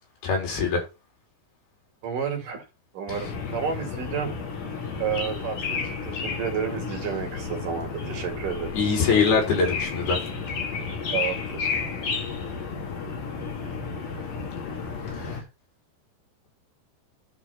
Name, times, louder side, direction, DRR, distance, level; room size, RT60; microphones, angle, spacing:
voice 1, 0.2-0.8 8.7-10.2, left 5 dB, 80° left, 5.7 m, -22 dB
voice 2, 2.0-2.7 2.9-4.3 5.0-8.7 11.1-11.8, right 7 dB, 60° right, 3.5 m, -31 dB
sound 1, 3.1-15.4, left 5 dB, 55° left, 3.8 m, -32 dB
11.5 x 4.6 x 5.6 m
omnidirectional pair, 4.4 m